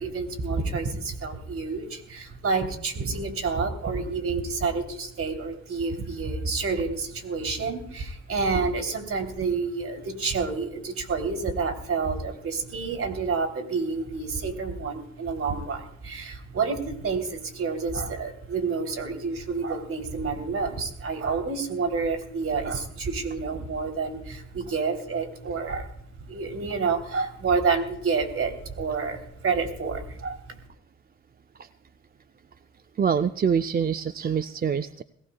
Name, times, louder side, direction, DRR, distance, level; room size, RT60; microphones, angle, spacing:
voice 1, 0.0-25.9 26.2-30.6, right 4 dB, 50° right, 5 dB, 3.3 m, -29 dB
voice 2, 33.0-35.0, right 7 dB, 30° right, 9 dB, 0.5 m, -25 dB
21.5 x 17.5 x 2.3 m, 0.71 s
cardioid pair, 90°, 30 cm